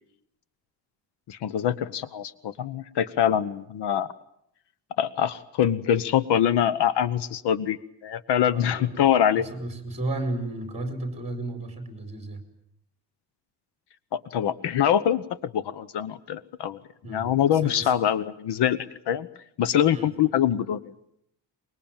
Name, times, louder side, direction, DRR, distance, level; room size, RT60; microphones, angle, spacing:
voice 1, 1.3-4.1 5.0-9.5 14.1-16.8 17.1-19.3 19.6-20.9, left 9 dB, 75° left, 17 dB, 1.0 m, -24 dB
voice 2, 8.5-12.4 17.0-18.0 19.9-20.1, right 2 dB, 15° right, 5 dB, 4.3 m, -34 dB
24.5 x 21.5 x 8.9 m, 0.73 s
cardioid pair, 175°, 41 cm